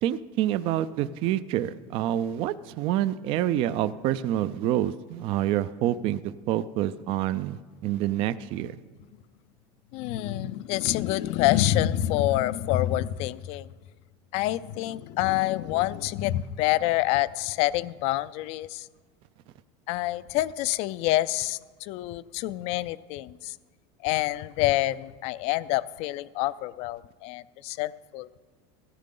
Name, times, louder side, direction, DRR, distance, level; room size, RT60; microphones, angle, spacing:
voice 1, 0.0-6.2 6.5-8.8, right 12 dB, 40° right, 14 dB, 0.4 m, -27 dB
voice 2, 9.9-13.7 14.3-18.8 19.9-23.5 24.0-28.3, left 15 dB, 45° left, 17 dB, 0.4 m, -27 dB
15.5 x 14.0 x 3.8 m, 1.4 s
cardioid pair, 165°, 14 cm